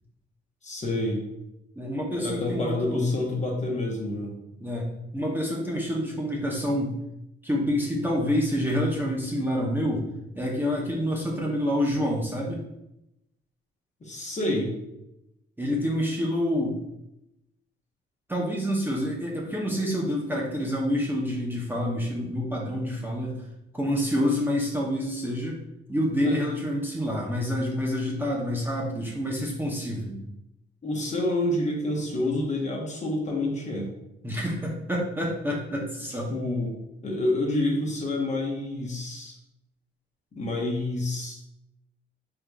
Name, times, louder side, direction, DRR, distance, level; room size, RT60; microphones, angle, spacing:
voice 1, 0.6-1.2 2.1-4.3 14.0-14.7 26.2-26.4 30.8-33.9 36.3-36.7 37.0-39.4 40.3-41.4, left 1 dB, 35° left, -1 dB, 1.0 m, -28 dB
voice 2, 1.8-3.1 4.6-4.9 5.1-6.9 7.4-10.0 10.4-12.6 15.6-16.8 18.3-23.4 23.7-25.5 25.9-30.1 34.2-36.3, equal, 10° right, -3 dB, 0.7 m, -27 dB
3.7 x 3.1 x 2.3 m, 0.86 s
cardioid pair, 90°, 20 cm